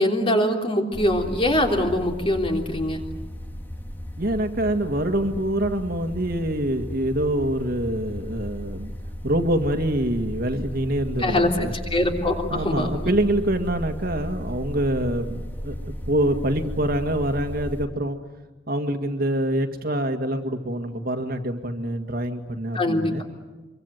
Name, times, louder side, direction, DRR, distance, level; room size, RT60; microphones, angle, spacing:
voice 1, 0.0-3.0 11.2-13.0 22.7-23.2, left 1 dB, 30° left, 3 dB, 3.3 m, -23 dB
sound 1, 0.9-17.9, equal, 10° left, 1.8 m, -35 dB
voice 2, 4.2-8.9 9.2-11.7 12.5-18.2 18.7-23.2, right 1 dB, 50° right, 6 dB, 1.9 m, -25 dB
26.0 x 24.0 x 9.2 m, 1.2 s
head